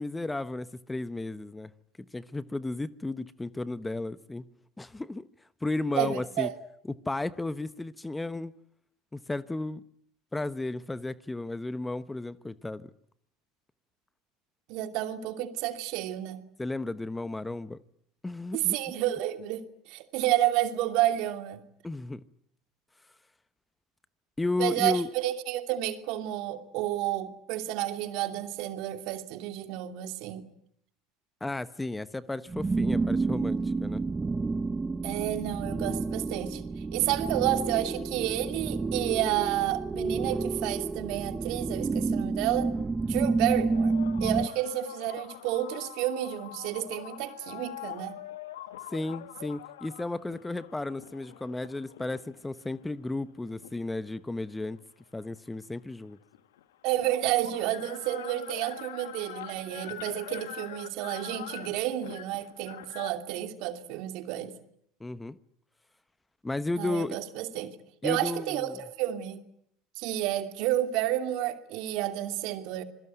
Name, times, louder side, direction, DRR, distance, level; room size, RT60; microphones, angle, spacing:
voice 1, 0.0-1.7 2.0-4.4 4.8-5.3 5.6-6.5 7.1-8.5 9.1-9.8 10.3-12.8 16.6-17.8 18.2-18.8 21.8-22.2 24.4-25.1 31.4-34.0 48.9-54.8 55.1-56.2 65.0-65.4 66.4-67.2 68.0-68.8, left 2 dB, 10° left, 1.1 m, -33 dB
voice 2, 5.9-6.5 14.7-16.4 18.5-19.6 19.9-21.6 24.6-30.4 35.0-36.6 36.9-42.7 43.0-43.9 44.2-48.1 56.8-64.5 66.8-67.7 68.0-69.4 70.0-72.8, right 13 dB, 60° right, 2.7 m, -30 dB
sound 1, 32.5-44.5, right 3 dB, 20° right, 1.2 m, -30 dB
sound 2, 43.7-52.5 53.1-54.9 56.1-56.2 56.3-63.1, left 13 dB, 75° left, 1.7 m, -44 dB
26.5 x 22.0 x 9.3 m
hypercardioid pair, 75°, 0 cm